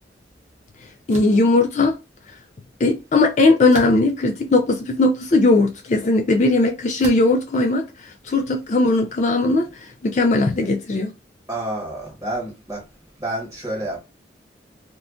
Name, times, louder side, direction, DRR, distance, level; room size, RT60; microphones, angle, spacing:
voice 1, 1.1-1.9 2.8-11.1, left 2 dB, 40° left, 0.3 m, -18 dB
sound 1, 1.1-1.4 3.7-4.3 5.0-5.1 7.0-7.4, right 2 dB, 40° right, 0.6 m, -35 dB
voice 2, 11.5-12.8 13.2-14.0, right 1 dB, 20° right, 1.4 m, -29 dB
2.4 x 2.2 x 3.6 m
head